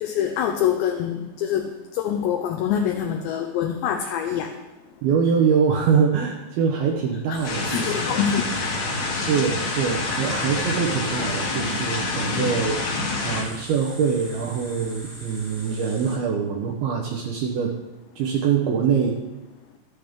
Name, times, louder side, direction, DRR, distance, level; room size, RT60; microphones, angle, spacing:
voice 1, 0.0-1.7 1.9-4.5 7.3-7.4 7.7-8.5, left 9 dB, 80° left, 4 dB, 2.9 m, -25 dB
voice 2, 5.0-8.0 9.1-17.7 18.2-19.2, right 6 dB, 75° right, 0 dB, 2.3 m, -24 dB
sound 1, 7.3-16.2, equal, 10° right, 1.5 m, -42 dB
sound 2, 7.4-13.4, left 3 dB, 55° left, 2.1 m, -27 dB
13.0 x 11.5 x 3.6 m, 1.0 s
omnidirectional pair, 5.4 m